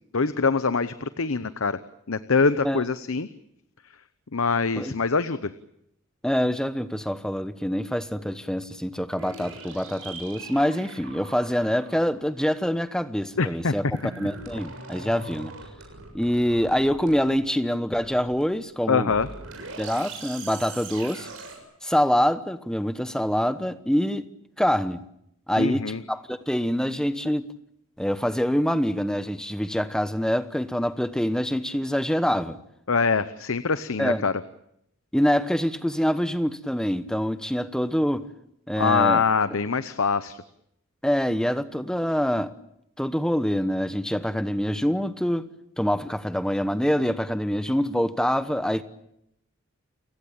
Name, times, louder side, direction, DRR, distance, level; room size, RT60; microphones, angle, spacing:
voice 1, 0.1-1.8 2.1-3.3 4.3-5.5 13.4-13.7 14.0-14.1 18.9-19.3 25.6-26.0 32.9-34.3 38.8-40.4, left 4 dB, 70° left, 0.9 m, -24 dB
voice 2, 6.2-13.8 14.2-15.5 16.1-19.1 19.8-21.3 21.8-24.3 24.6-25.0 25.5-27.5 28.0-32.6 34.0-34.2 35.1-38.3 38.7-39.2 41.0-42.5 43.0-45.5 45.8-48.8, equal, 5° left, 1.0 m, -25 dB
sound 1, 9.2-12.2 13.9-17.6 18.0-18.6 19.1-21.6, right 3 dB, 65° right, 7.2 m, -41 dB
29.5 x 16.5 x 8.8 m
head